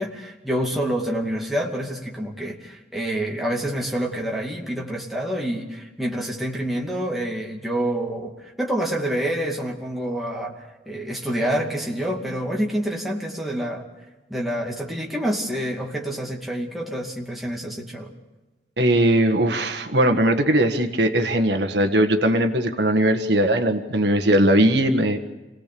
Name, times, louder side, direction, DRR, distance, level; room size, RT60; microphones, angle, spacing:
voice 1, 0.0-8.3 8.6-13.9 14.3-18.1, right 1 dB, ahead, -2 dB, 2.5 m, -27 dB
voice 2, 18.8-25.2, right 1 dB, 65° right, 5 dB, 1.5 m, -19 dB
27.5 x 18.0 x 6.9 m, 1.1 s
head